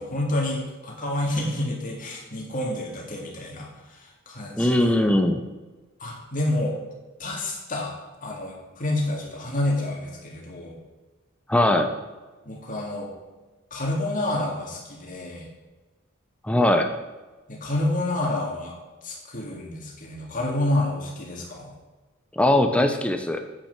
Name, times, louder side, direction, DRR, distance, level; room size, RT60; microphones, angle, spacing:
voice 1, 0.0-5.0 6.0-6.8 7.2-7.9 8.2-10.8 12.4-13.1 13.7-15.5 17.5-18.8 19.0-21.7, left 1 dB, 40° left, -1 dB, 2.2 m, -29 dB
voice 2, 4.6-5.4 11.5-11.9 16.5-16.9 22.4-23.4, left 1 dB, 5° left, 5 dB, 0.6 m, -20 dB
8.6 x 6.0 x 5.9 m, 1.2 s
head